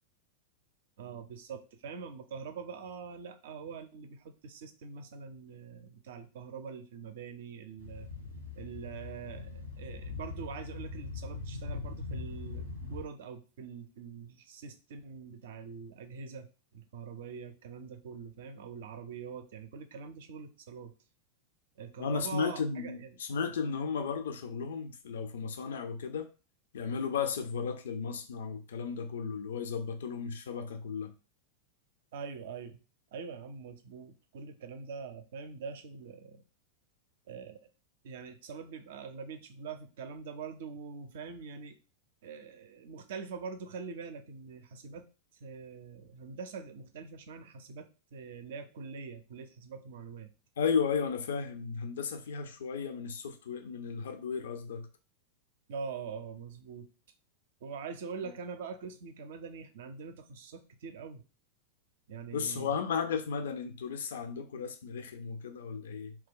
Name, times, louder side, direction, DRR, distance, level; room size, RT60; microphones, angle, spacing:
voice 1, 1.0-8.1 8.6-21.0 21.8-23.2 32.1-32.8 33.1-36.4 37.3-37.7 38.0-41.8 42.2-45.1 45.4-50.3 55.7-56.9 57.6-61.3 62.1-62.7, right 5 dB, 55° right, 0.4 m, -44 dB
sound 1, 7.8-13.0, left 3 dB, 90° left, 0.9 m, -41 dB
voice 2, 22.0-26.3 26.7-31.1 50.6-54.9 62.3-66.2, left 6 dB, 60° left, 0.4 m, -34 dB
2.8 x 2.2 x 3.6 m
figure-of-eight pair, 90°, 0 cm